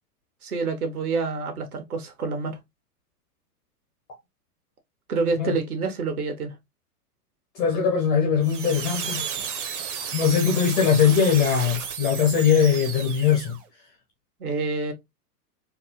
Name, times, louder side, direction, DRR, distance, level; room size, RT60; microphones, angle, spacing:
voice 1, 0.4-2.6 5.1-6.5 14.4-14.9, right 4 dB, 65° right, 1.5 m, -27 dB
voice 2, 7.5-9.2 10.1-13.6, left 7 dB, 10° left, 0.4 m, -21 dB
sound 1, 8.4-13.6, right 7 dB, 50° right, 1.0 m, -33 dB
4.4 x 2.6 x 3.1 m
figure-of-eight pair, 105°, 47 cm